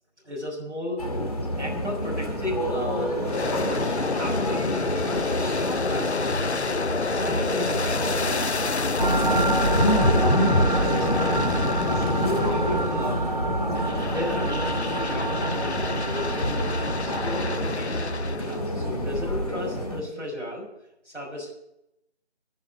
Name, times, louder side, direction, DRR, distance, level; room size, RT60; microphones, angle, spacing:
voice 1, 0.2-1.0 1.6-3.3 3.7-4.7 5.2-6.2 7.1-8.8 9.2-11.7 12.1-13.2 14.0-14.5 15.0-20.7 21.0-21.5, left 1 dB, 85° right, -4 dB, 6.1 m, -34 dB
sound 1, 1.0-20.0, equal, 35° left, 2.2 m, -28 dB
Aircraft, 3.2-13.3 13.7-18.7, left 4 dB, 70° left, 0.7 m, -29 dB
sound 2, 9.0-17.6, right 2 dB, 40° right, 1.3 m, -27 dB
12.0 x 10.5 x 7.8 m, 0.80 s
figure-of-eight pair, 170°, 35 cm